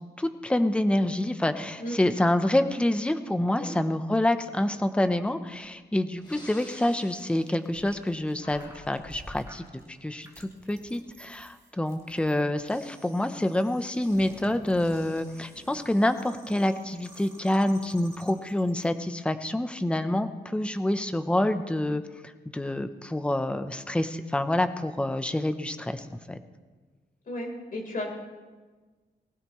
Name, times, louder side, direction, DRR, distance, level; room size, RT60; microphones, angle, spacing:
voice 1, 0.2-26.4, left 1 dB, 5° left, 9 dB, 0.7 m, -27 dB
Breathing, 5.5-5.6 6.1-8.1 8.4-9.5, left 1 dB, 25° left, 4.1 m, -47 dB
sound 1, 6.2-18.9, right 1 dB, 15° right, 2.7 m, -52 dB
voice 2, 27.3-28.1, left 1 dB, 50° left, 0 dB, 3.8 m, -34 dB
23.0 x 16.0 x 3.1 m, 1.3 s
wide cardioid pair, 165°, 18 cm